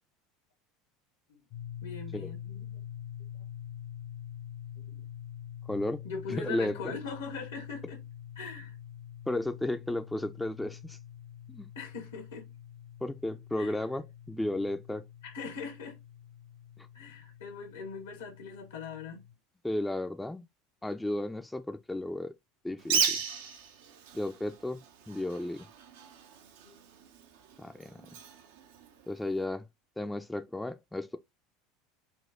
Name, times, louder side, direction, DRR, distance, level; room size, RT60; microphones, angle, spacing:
sound 1, 1.5-19.3, left 10 dB, 55° left, 0.7 m, -46 dB
voice 1, 1.8-2.8 4.9-5.0 6.0-8.0 8.3-8.8 11.7-12.5 13.6-13.8 15.2-16.0 16.9-19.2 26.6-26.8, left 4 dB, 80° left, 1.2 m, -41 dB
voice 2, 5.7-6.9 9.3-11.0 11.5-11.7 13.0-15.1 16.8-16.9 19.6-20.4 20.8-22.3 22.6-23.2 24.1-25.7 27.6-28.0 29.1-29.7 30.0-31.2, left 1 dB, 5° left, 0.4 m, -34 dB
Bird, 22.8-29.4, right 7 dB, 75° right, 0.7 m, -36 dB
4.3 x 2.2 x 3.6 m
hypercardioid pair, 80°, 0 cm